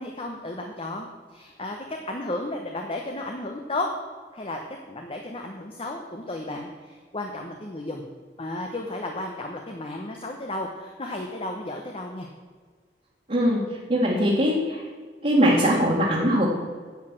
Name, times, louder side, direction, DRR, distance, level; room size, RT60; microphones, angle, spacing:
voice 1, 0.0-3.9 4.3-4.6 4.9-8.1 8.4-12.3, left 2 dB, 30° left, 2 dB, 1.0 m, -33 dB
voice 2, 13.3-13.6 13.9-14.8 15.2-16.5, equal, 40° right, -6 dB, 2.0 m, -21 dB
10.5 x 8.3 x 6.4 m, 1.5 s
head